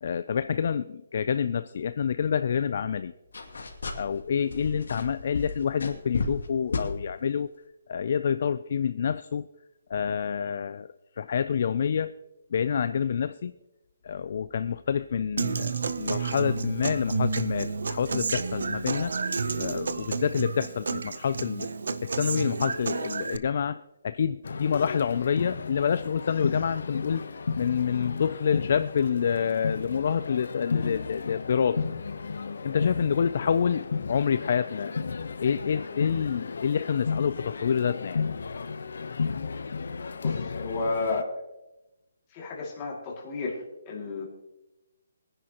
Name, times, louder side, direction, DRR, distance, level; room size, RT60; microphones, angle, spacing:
voice 1, 0.0-3.1 4.0-7.5 7.9-9.5 9.9-10.9 11.2-12.1 12.5-13.5 14.0-15.7 16.0-19.1 19.5-21.7 22.0-31.8 32.6-34.9 35.4-38.2, left 7 dB, 40° left, 13 dB, 0.3 m, -27 dB
sound 1, 3.3-4.2 4.5-6.5 6.7-6.9, left 4 dB, 90° left, 2.5 m, -32 dB
Human voice / Acoustic guitar, 15.4-23.4, right 4 dB, 65° right, 0.7 m, -30 dB
sound 2, 24.4-41.2, left 5 dB, 60° left, 0.8 m, -34 dB
voice 2, 40.2-41.3 42.3-44.3, left 3 dB, 15° left, -3 dB, 2.3 m, -32 dB
22.5 x 10.5 x 2.9 m, 0.96 s
hypercardioid pair, 180°, 0 cm